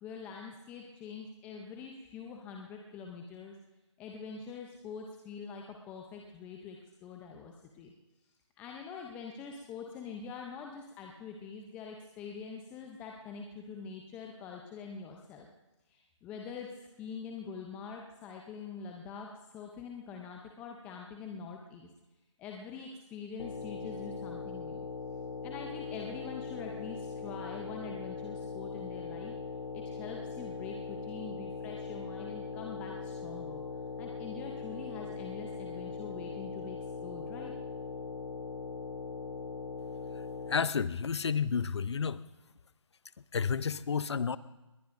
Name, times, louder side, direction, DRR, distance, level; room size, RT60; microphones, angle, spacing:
voice 1, 0.0-3.6 4.0-7.9 8.6-15.5 15.9-16.7 17.0-21.9 22.4-24.8 25.4-29.3 29.7-33.6 34.0-37.5, left 5 dB, 10° left, 1 dB, 0.6 m, -44 dB
sound 1, 23.4-40.6, left 5 dB, 90° left, 1.2 m, -40 dB
voice 2, 40.4-42.2 43.3-44.4, left 6 dB, 60° left, 17 dB, 0.6 m, -31 dB
20.5 x 20.0 x 2.6 m, 1.1 s
figure-of-eight pair, 155°, 16 cm